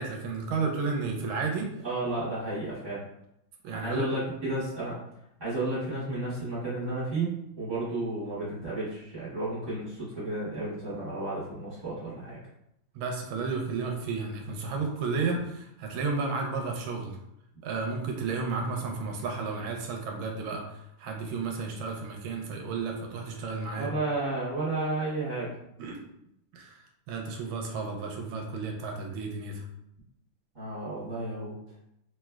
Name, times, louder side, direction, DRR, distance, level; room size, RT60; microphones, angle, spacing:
voice 1, 0.0-1.7 3.6-4.1 12.9-17.2 17.6-23.9 25.8-26.0 26.5-29.7, right 4 dB, 80° right, 2 dB, 1.4 m, -32 dB
voice 2, 1.8-3.0 3.7-5.0 5.4-12.4 23.8-25.6 30.5-31.5, right 2 dB, 25° right, -10 dB, 1.2 m, -32 dB
3.3 x 3.1 x 2.3 m, 0.78 s
omnidirectional pair, 2.3 m